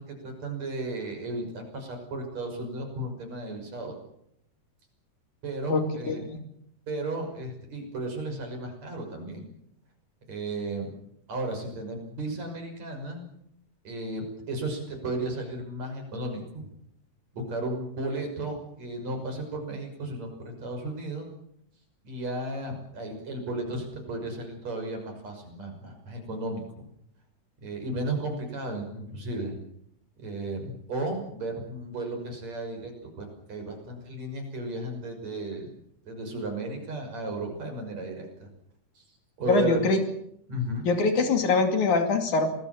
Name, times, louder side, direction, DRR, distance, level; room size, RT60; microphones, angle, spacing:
voice 1, 0.0-4.0 5.4-6.2 6.9-9.5 10.3-10.9 11.3-13.2 13.8-16.7 17.3-21.3 22.0-26.9 27.6-29.6 30.2-32.9 33.2-35.8 36.1-38.5 39.0-39.1 39.4-39.8 40.5-40.9, right 2 dB, 55° right, 3 dB, 7.2 m, -34 dB
voice 2, 5.7-6.4 39.5-40.0 40.9-42.5, left 4 dB, 70° left, 6 dB, 4.0 m, -24 dB
27.0 x 20.5 x 7.2 m, 0.74 s
omnidirectional pair, 3.6 m